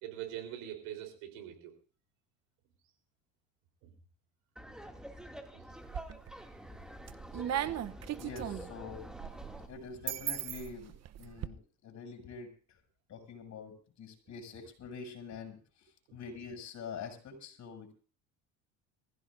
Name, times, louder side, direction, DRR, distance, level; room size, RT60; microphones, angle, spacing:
voice 1, 0.0-1.7 3.8-3.9 5.5-5.6 16.1-16.2, right 11 dB, 90° right, 5 dB, 4.0 m, -43 dB
Laughter, 4.6-9.7, equal, ahead, 2.4 m, -47 dB
sound 1, 5.7-6.4 6.8-11.5, right 11 dB, 50° right, 0.9 m, -38 dB
voice 2, 8.2-12.8 13.1-17.9, left 5 dB, 55° left, 3 dB, 7.0 m, -46 dB
23.5 x 15.5 x 2.6 m, 0.40 s
supercardioid pair, 85°, 33 cm